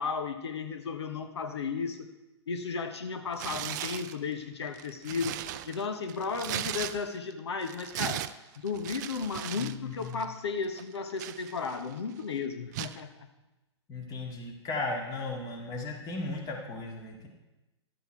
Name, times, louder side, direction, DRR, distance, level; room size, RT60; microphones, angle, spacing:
voice 1, 0.0-2.1 2.5-5.4 5.7-8.2 8.6-13.3, left 5 dB, 65° left, 7 dB, 1.0 m, -34 dB
Tearing, 3.3-4.2 4.7-7.3 7.6-9.8 10.0-10.3 10.8-11.9 12.7-13.0, right 12 dB, 40° right, 0.4 m, -37 dB
voice 2, 9.6-10.2 13.9-17.3, left 3 dB, 25° left, 0 dB, 2.2 m, -36 dB
12.0 x 8.0 x 4.5 m, 1.0 s
figure-of-eight pair, 105°, 15 cm